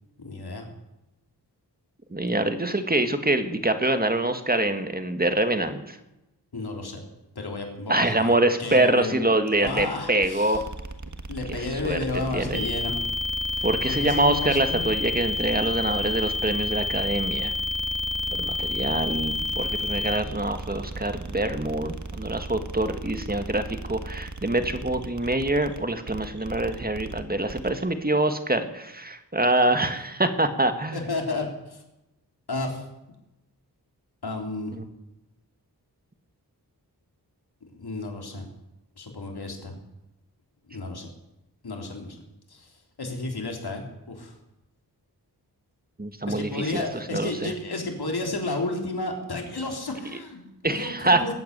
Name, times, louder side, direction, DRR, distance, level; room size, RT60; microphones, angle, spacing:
voice 1, 0.2-0.7 6.5-7.0 7.4-8.3 8.6-9.3 9.6-10.6 11.3-13.0 13.5-14.9 30.9-31.8 32.5-32.8 34.2-34.7 37.8-38.5 39.0-39.8 40.7-41.1 41.6-42.2 42.5-42.7 43.0-44.3 46.3-51.3, left 2 dB, 70° left, 2 dB, 3.7 m, -32 dB
voice 2, 2.1-6.0 7.9-10.7 11.5-12.0 12.3-12.6 13.6-17.5 18.3-31.0 34.7-34.8 46.0-46.8 47.1-47.5 50.6-51.3, right 2 dB, 20° right, 8 dB, 2.0 m, -25 dB
sound 1, 9.6-27.8, right 2 dB, 45° right, 1.6 m, -37 dB
sound 2, 12.5-20.2, left 3 dB, ahead, 2.8 m, -29 dB
20.5 x 8.5 x 8.3 m, 0.93 s
cardioid pair, 50°, 40 cm